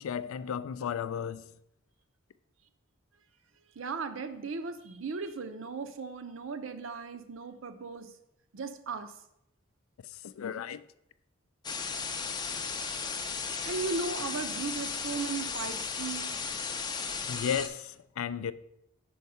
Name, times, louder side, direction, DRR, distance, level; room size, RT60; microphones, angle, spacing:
voice 1, 0.0-1.5 10.4-10.8 17.3-18.5, left 7 dB, 85° left, 0.3 m, -34 dB
voice 2, 3.8-8.1 8.5-9.1 13.6-16.4, right 4 dB, 70° right, 0.6 m, -37 dB
sound 1, 11.6-17.7, left 5 dB, 20° left, 0.4 m, -35 dB
5.4 x 4.6 x 5.4 m
head